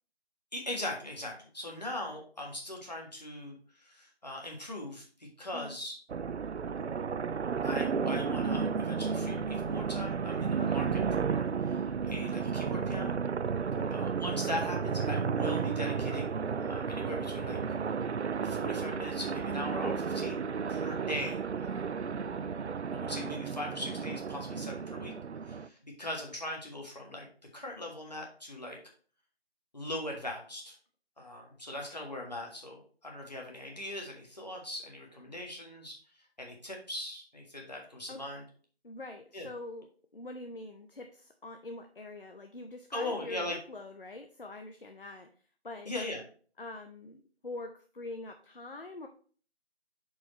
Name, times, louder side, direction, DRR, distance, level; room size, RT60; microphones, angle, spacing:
voice 1, 0.5-5.9 7.6-13.2 13.9-17.6 18.4-21.9 22.9-25.1 25.4-27.3 27.5-28.8 29.7-30.7 31.2-36.0 36.4-38.4 39.3-39.5 42.9-43.6 45.8-46.2, left 1 dB, 40° left, 0 dB, 1.6 m, -40 dB
sound 1, 6.1-25.7, right 6 dB, 85° right, 0.5 m, -33 dB
voice 2, 10.6-10.9 13.7-13.9 38.1-38.2 38.8-45.3 45.6-45.9 46.6-49.1, left 2 dB, 55° left, 6 dB, 0.6 m, -44 dB
8.3 x 4.8 x 3.1 m, 0.43 s
figure-of-eight pair, 170°, 33 cm